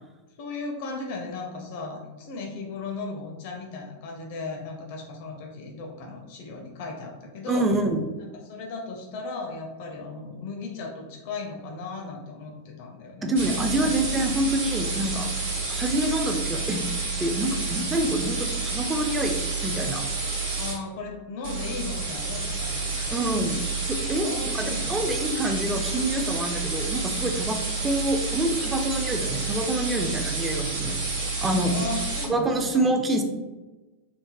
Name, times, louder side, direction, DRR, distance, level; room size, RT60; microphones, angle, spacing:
voice 1, 0.4-7.7 8.2-14.0 15.5-15.7 20.6-23.5 24.2-25.1 31.6-32.9, left 3 dB, 50° left, 1 dB, 0.4 m, -36 dB
voice 2, 7.5-8.0 13.2-15.3 15.7-16.9 17.2-19.4 19.6-20.0 23.1-23.6 23.9-24.3 24.5-31.0 31.4-31.7 32.3-33.2, right 1 dB, 15° right, 4 dB, 0.3 m, -26 dB
sound 1, 13.3-20.8 21.4-32.3, right 3 dB, 60° right, 0.9 m, -29 dB
3.2 x 2.0 x 2.4 m, 1.2 s
figure-of-eight pair, 90°, 0 cm